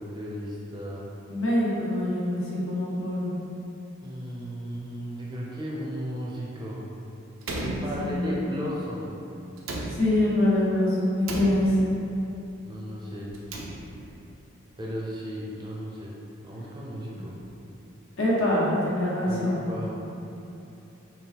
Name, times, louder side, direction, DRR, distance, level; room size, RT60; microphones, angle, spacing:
voice 1, 0.0-1.1 4.0-6.9 7.6-9.2 12.6-13.4 14.8-17.4 19.2-19.9, equal, 20° right, -4 dB, 0.5 m, -35 dB
voice 2, 1.3-3.3 8.0-8.3 9.9-11.8 18.2-19.6, left 1 dB, 75° left, -7 dB, 1.2 m, -24 dB
Slam, 7.4-8.5 9.6-10.5 11.2-12.1 13.2-14.2, right 1 dB, 85° right, 0.6 m, -35 dB
4.4 x 3.1 x 3.5 m, 2.8 s
head